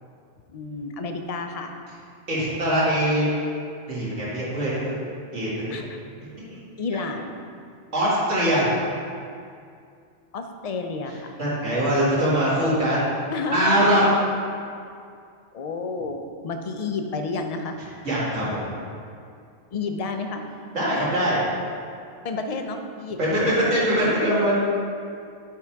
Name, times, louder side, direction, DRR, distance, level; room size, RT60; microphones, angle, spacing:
voice 1, 0.5-1.7 5.7-6.0 6.8-7.4 10.3-11.3 13.3-14.0 15.5-17.8 19.7-20.4 22.2-23.9, left 3 dB, 50° left, 5 dB, 0.5 m, -31 dB
voice 2, 2.3-3.3 3.9-5.0 5.3-5.8 6.4-6.5 7.9-8.7 11.4-13.1 13.5-14.0 18.0-18.6 20.7-21.4 23.2-24.5, right 1 dB, 90° right, -7 dB, 2.2 m, -22 dB
9.7 x 3.7 x 4.5 m, 2.3 s
omnidirectional pair, 1.2 m